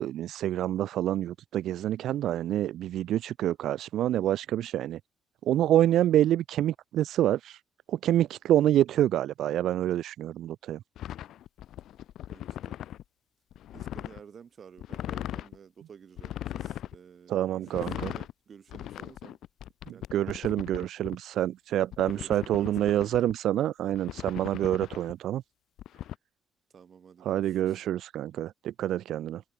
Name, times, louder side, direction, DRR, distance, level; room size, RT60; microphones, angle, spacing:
voice 1, 0.0-5.0 5.5-7.6 7.9-10.8 17.3-18.1 20.1-25.4 27.3-29.4, right 12 dB, 80° right, 0.8 m, -27 dB
sound 1, 11.0-13.0 13.5-14.2 14.8-15.6 16.2-17.0 17.6-18.3 18.7-21.2 21.9-23.3 23.9-25.1 25.8-26.1, left 12 dB, 75° left, 2.2 m, -38 dB
voice 2, 12.3-12.8 13.7-19.4 19.9-20.4 22.1-23.0 26.7-27.8, right 7 dB, 50° right, 6.6 m, -52 dB
cardioid pair, 90°, 0 cm